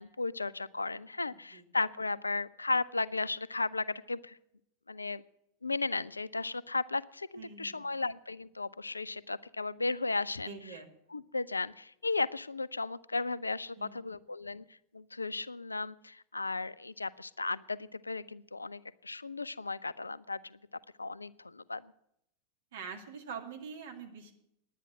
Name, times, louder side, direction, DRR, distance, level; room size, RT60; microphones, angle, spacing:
voice 1, 0.0-4.4 4.9-5.2 5.6-10.5 11.1-14.6 14.9-20.6 21.0-21.9, left 3 dB, 80° left, 20 dB, 0.4 m, -35 dB
voice 2, 1.3-1.6 7.4-7.9 10.5-11.2 13.8-14.2 22.7-24.3, right 6 dB, 60° right, 4 dB, 2.2 m, -45 dB
10.5 x 10.0 x 7.4 m, 0.77 s
figure-of-eight pair, 90°, 0 cm